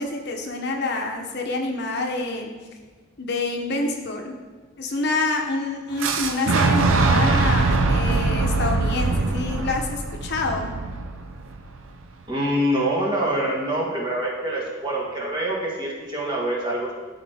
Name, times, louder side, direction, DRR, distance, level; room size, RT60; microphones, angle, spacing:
voice 1, 0.0-2.5 3.2-4.3 4.8-10.7, left 2 dB, 55° left, 3 dB, 0.8 m, -27 dB
Boom, 6.0-11.9, right 3 dB, 80° right, 0.6 m, -22 dB
voice 2, 12.3-16.9, right 1 dB, 25° right, -4 dB, 1.5 m, -25 dB
12.5 x 4.3 x 3.5 m, 1.4 s
head